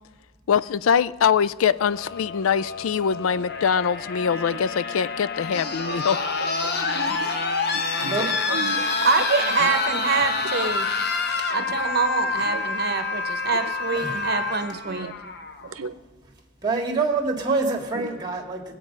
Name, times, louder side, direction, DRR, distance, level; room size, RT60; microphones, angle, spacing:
voice 1, 0.5-6.2, left 7 dB, 80° left, 18 dB, 0.4 m, -23 dB
sound 1, 1.7-15.7 17.0-17.1, left 4 dB, 50° left, 0.9 m, -28 dB
voice 2, 5.5-6.0 6.6-7.3 8.0-9.0 12.5-12.6 14.9-15.1 15.6-15.9, right 4 dB, 85° right, 10 dB, 0.7 m, -35 dB
voice 3, 8.1-8.4 11.4-11.5 12.3-12.5 13.9-14.3 16.6-18.8, right 3 dB, 20° right, 3 dB, 1.6 m, -26 dB
voice 4, 9.0-10.9 11.5-15.1, right 4 dB, 50° right, 8 dB, 0.9 m, -25 dB
20.0 x 8.3 x 5.3 m, 1.3 s
head